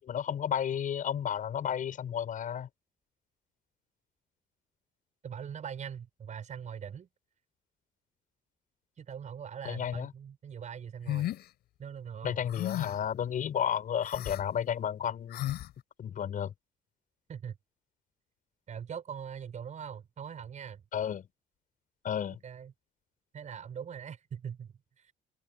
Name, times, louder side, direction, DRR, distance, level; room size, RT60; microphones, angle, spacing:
voice 1, 0.0-2.7 9.6-10.1 12.2-15.4 16.0-16.5 20.9-21.3 22.0-22.4, left 9 dB, 50° left, 7.9 m, -32 dB
voice 2, 5.2-7.1 9.0-11.3 11.8-12.4 17.3-17.6 18.7-20.8 22.4-22.7 23.3-25.1, right 7 dB, 45° right, 7.4 m, -42 dB
sound 1, 11.1-11.4 12.5-13.1 14.0-14.4 15.3-15.7, left 14 dB, 75° left, 7.2 m, -34 dB
open air
cardioid pair, 110°, 17 cm